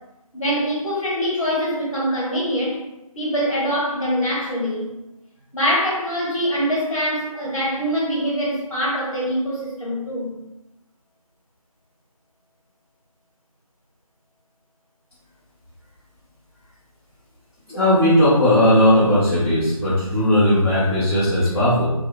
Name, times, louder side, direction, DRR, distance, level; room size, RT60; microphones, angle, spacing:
voice 1, 0.3-2.8 3.1-4.9 5.5-10.3, equal, 60° left, -4 dB, 1.4 m, -23 dB
voice 2, 17.7-21.8, left 1 dB, 40° left, -12 dB, 1.4 m, -17 dB
3.4 x 2.9 x 2.3 m, 0.91 s
figure-of-eight pair, 170°, 19 cm